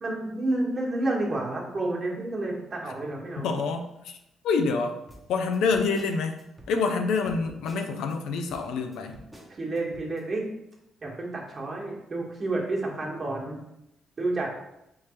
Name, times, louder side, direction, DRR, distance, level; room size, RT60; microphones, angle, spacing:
voice 1, 0.0-3.5 9.5-10.5 11.0-13.6 14.2-14.5, right 2 dB, 35° right, -2 dB, 1.4 m, -30 dB
voice 2, 3.4-4.2 4.4-5.0 5.3-6.4 6.7-9.2, left 4 dB, 85° left, 5 dB, 0.5 m, -27 dB
sound 1, 5.1-8.2 8.5-10.2, equal, 5° right, 0.9 m, -50 dB
3.4 x 3.3 x 4.3 m, 0.85 s
cardioid pair, 90°, 0 cm